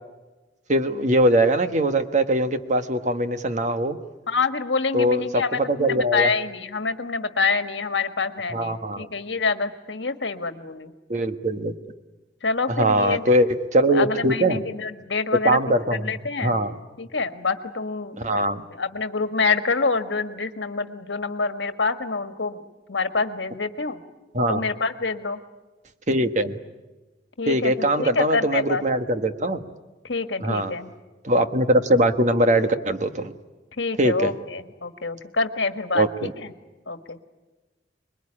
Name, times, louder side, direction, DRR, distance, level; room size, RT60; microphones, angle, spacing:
voice 1, 0.7-4.0 4.9-6.3 8.5-9.1 11.1-11.7 12.7-14.6 15.4-16.0 16.4-16.8 18.2-18.6 24.3-24.6 26.1-26.6 27.5-29.6 30.4-30.7 31.2-33.3 34.0-34.3 35.9-36.3, right 1 dB, 40° right, 9 dB, 1.4 m, -21 dB
voice 2, 4.3-10.9 12.4-13.2 13.9-15.6 15.9-16.6 17.0-18.2 18.8-22.6 22.9-24.0 24.5-25.4 27.4-28.8 30.0-30.9 33.8-36.5 36.9-37.2, left 4 dB, 80° left, 9 dB, 1.6 m, -26 dB
26.0 x 21.5 x 9.9 m, 1.2 s
head